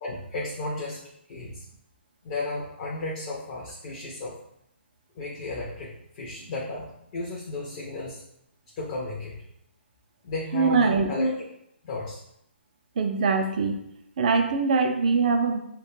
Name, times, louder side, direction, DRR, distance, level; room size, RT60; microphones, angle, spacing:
voice 1, 0.0-1.0 1.3-1.7 2.2-4.4 5.2-6.9 7.1-8.2 8.8-9.4 10.2-11.4 11.8-12.2, left 2 dB, 30° left, -3 dB, 0.4 m, -33 dB
voice 2, 10.5-11.2 13.0-13.8 14.2-15.6, right 4 dB, 40° right, 5 dB, 0.3 m, -23 dB
2.1 x 2.1 x 3.1 m, 0.76 s
hypercardioid pair, 155°, 6 cm